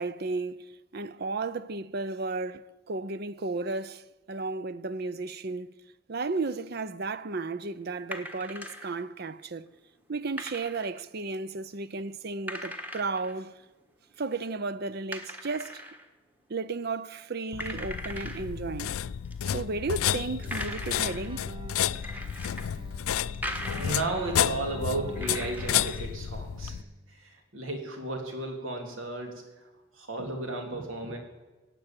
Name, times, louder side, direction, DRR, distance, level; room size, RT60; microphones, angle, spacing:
voice 1, 0.0-5.7 6.1-9.7 10.1-13.6 14.2-15.8 16.5-18.9 19.4-21.5, right 3 dB, 50° right, 0.6 m, -34 dB
sound 1, 7.9-9.0 10.4-11.0 11.6-11.7 12.4-13.4 13.8-13.9 14.2-14.7 15.1-16.1 16.6-16.9 17.1-17.2 17.6-18.5 19.0-20.0 20.3-21.3 21.9-22.7 23.0-24.3 24.9-26.2, equal, 10° right, 1.3 m, -40 dB
sound 2, 17.5-26.8, left 10 dB, 90° left, 0.4 m, -31 dB
Keyboard (musical), 19.9-27.2, right 2 dB, 25° right, 0.9 m, -45 dB
voice 2, 23.8-26.8 27.2-29.4 30.0-31.2, right 2 dB, 75° right, 3.2 m, -34 dB
17.0 x 8.5 x 8.9 m
head